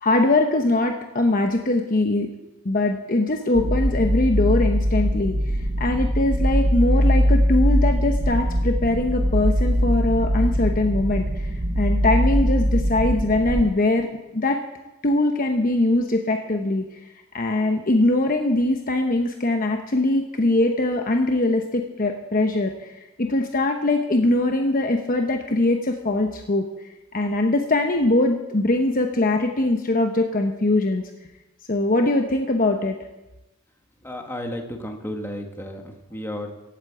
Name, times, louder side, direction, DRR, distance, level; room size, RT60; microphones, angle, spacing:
voice 1, 0.0-2.3 2.6-5.4 5.8-14.1 14.3-14.6 15.0-16.9 17.3-22.9 23.2-26.7 27.1-31.0 31.7-33.0, left 2 dB, 40° left, 4 dB, 1.0 m, -22 dB
sound 1, 3.5-13.6, equal, 50° right, 1.0 m, -21 dB
voice 2, 34.0-36.5, left 1 dB, 10° left, 3 dB, 1.6 m, -33 dB
16.0 x 8.5 x 8.1 m, 0.99 s
head